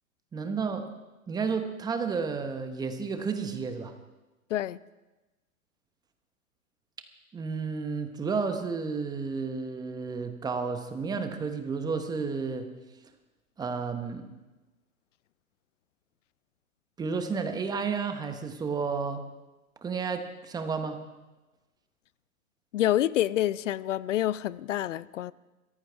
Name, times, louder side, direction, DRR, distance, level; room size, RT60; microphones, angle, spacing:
voice 1, 0.3-0.8 1.3-3.9 7.3-12.7 13.6-14.2 17.0-19.2 19.8-21.0, right 5 dB, 10° right, 7 dB, 1.0 m, -31 dB
voice 2, 22.7-25.3, left 12 dB, 60° left, 20 dB, 0.6 m, -27 dB
22.0 x 14.5 x 3.5 m, 1.1 s
hypercardioid pair, 130°, 43 cm